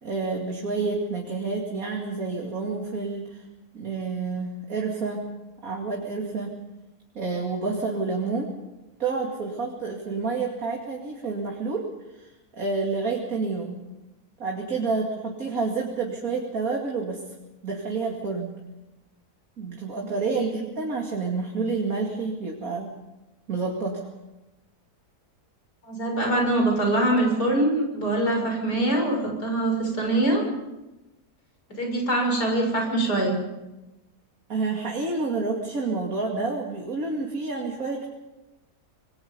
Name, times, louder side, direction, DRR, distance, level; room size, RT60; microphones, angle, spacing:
voice 1, 0.0-3.5 3.7-5.3 5.6-6.6 7.1-8.5 9.0-11.8 12.1-12.3 12.6-13.8 14.4-17.2 17.6-18.5 19.6-22.9 23.5-24.1 34.5-38.1, right 4 dB, 60° right, -1 dB, 2.8 m, -29 dB
voice 2, 25.8-30.4 31.8-33.3, right 1 dB, 80° left, 1 dB, 7.0 m, -23 dB
26.5 x 21.5 x 5.5 m, 1.0 s
omnidirectional pair, 1.7 m